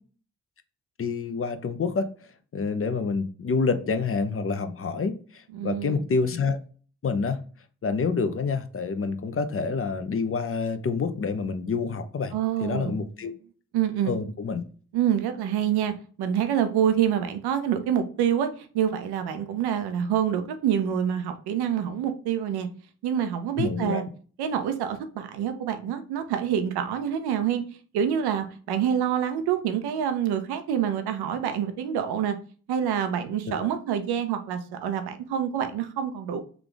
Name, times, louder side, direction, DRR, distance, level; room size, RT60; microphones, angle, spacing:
voice 1, 1.0-2.1 2.5-6.6 7.0-7.4 7.8-12.3 12.6-13.3 14.1-14.6 23.6-24.1 33.5-33.7, left 4 dB, 35° left, 0.6 m, -27 dB
voice 2, 5.5-6.0 12.3-13.3 13.7-14.1 14.9-22.7 23.0-24.0 24.4-27.6 27.9-32.4 32.7-36.4, right 9 dB, 85° right, 0.6 m, -27 dB
3.4 x 2.4 x 3.7 m
supercardioid pair, 40°, 38 cm